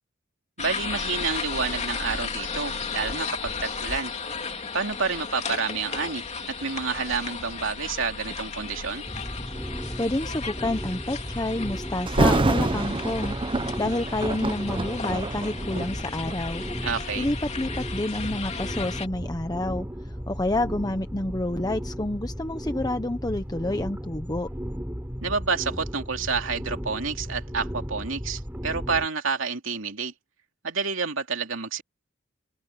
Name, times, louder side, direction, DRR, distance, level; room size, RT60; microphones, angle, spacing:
sound 1, 0.6-19.1, left 5 dB, 35° left, 3.0 m, -35 dB
voice 1, 0.6-4.1 4.7-9.0 16.8-17.3 25.2-30.1 30.6-31.8, right 5 dB, 70° right, 3.0 m, -29 dB
sound 2, 9.1-29.1, equal, 10° right, 4.4 m, -35 dB
voice 2, 10.0-13.4 13.8-16.6 17.2-19.9 20.3-24.5, left 1 dB, 20° left, 1.0 m, -29 dB
Thunder, 12.1-17.0 17.7-17.9 18.6-21.4 21.7-21.8, right 2 dB, 25° right, 0.8 m, -28 dB
open air
head